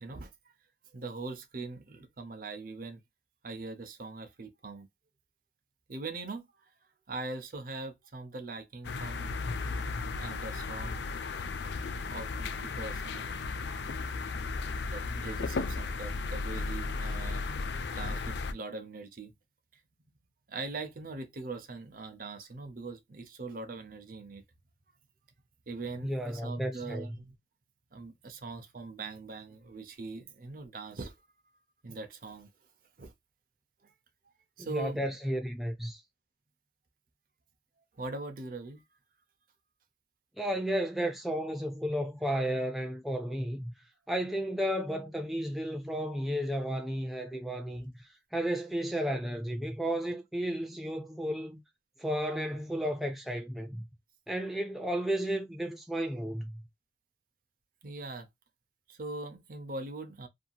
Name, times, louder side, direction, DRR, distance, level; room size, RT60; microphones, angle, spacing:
voice 1, 0.0-0.3 0.9-3.0 3.4-4.9 5.9-6.7 7.1-9.3 10.1-11.0 12.1-13.5 13.8-14.2 14.9-17.4 18.0-19.3 19.7-19.8 20.5-24.4 25.7-27.4 27.9-31.1 31.8-32.5 33.0-33.1 33.8-33.9 34.6-35.1 37.9-38.8 57.8-58.3 58.9-60.3, right 3 dB, 50° right, 0.7 m, -41 dB
sound 1, 8.8-18.5, left 4 dB, 70° left, 0.4 m, -35 dB
voice 2, 26.0-27.2 34.6-36.0 40.4-43.7 44.1-51.6 52.0-53.9 54.3-56.6, equal, ahead, 0.4 m, -33 dB
2.7 x 2.7 x 2.2 m
head